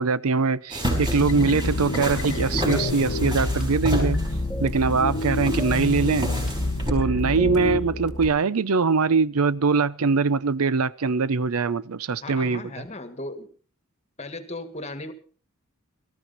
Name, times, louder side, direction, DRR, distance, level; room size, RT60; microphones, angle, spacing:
voice 1, 0.0-4.2 4.6-6.3 6.9-12.8, right 4 dB, 80° right, 0.6 m, -22 dB
sound 1, 0.7-6.9, equal, 20° right, 5.0 m, -31 dB
sound 2, 0.9-7.8, left 2 dB, 65° left, 1.0 m, -28 dB
sound 3, 2.5-8.3, left 1 dB, 5° right, 2.0 m, -32 dB
voice 2, 12.2-13.5 14.2-15.1, left 2 dB, 30° left, 1.6 m, -36 dB
19.0 x 14.0 x 4.1 m
head